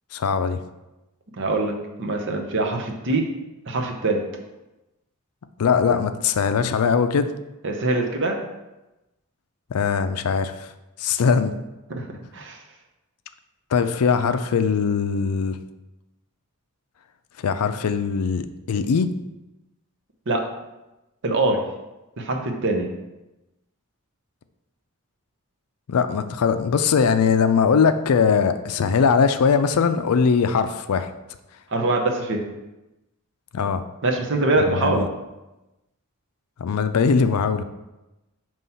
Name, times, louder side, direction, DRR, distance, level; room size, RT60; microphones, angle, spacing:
voice 1, 0.1-0.6 5.6-7.3 9.7-10.7 11.0-11.5 13.7-15.6 17.4-19.1 25.9-31.1 33.5-33.8 34.7-35.1 36.6-37.6, left 6 dB, 80° left, 10 dB, 0.4 m, -21 dB
voice 2, 1.4-3.2 3.7-4.2 7.6-8.4 12.0-12.1 12.3-12.6 20.3-20.5 21.2-21.6 22.2-22.9 31.7-32.4 34.0-35.1, right 2 dB, 55° right, 3 dB, 0.8 m, -23 dB
5.5 x 3.1 x 5.6 m, 0.99 s
head